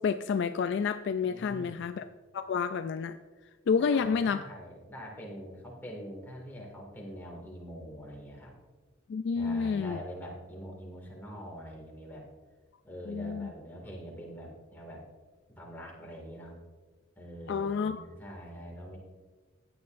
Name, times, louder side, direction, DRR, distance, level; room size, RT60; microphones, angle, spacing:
voice 1, 0.0-2.1 2.3-3.2 3.7-4.4 9.1-10.0 13.1-13.5 17.5-18.0, left 5 dB, 55° left, 10 dB, 0.3 m, -29 dB
voice 2, 1.3-1.8 3.7-8.5 9.3-12.2 12.8-15.0 15.5-16.6 17.2-19.0, equal, 10° left, -2 dB, 2.1 m, -44 dB
15.0 x 9.5 x 2.6 m, 1.4 s
head